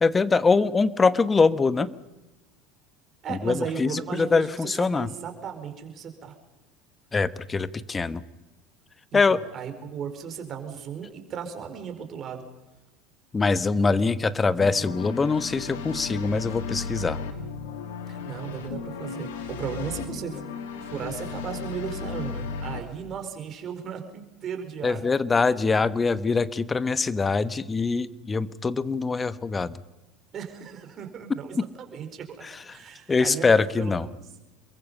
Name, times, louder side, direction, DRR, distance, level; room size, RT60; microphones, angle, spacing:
voice 1, 0.0-1.9 3.3-5.1 7.1-8.2 9.1-9.4 13.3-17.2 24.8-29.8 31.6-31.7 32.4-32.8 33.1-34.1, left 4 dB, 20° left, 15 dB, 1.2 m, -23 dB
voice 2, 3.2-6.4 9.1-12.4 18.1-20.4 20.8-25.0 30.3-32.4 32.7-33.5 33.8-34.2, right 7 dB, 40° right, 5 dB, 4.6 m, -36 dB
sound 1, 14.6-22.8, left 5 dB, 75° left, 2.9 m, -35 dB
27.5 x 22.5 x 5.5 m, 1.1 s
hypercardioid pair, 75°, 0 cm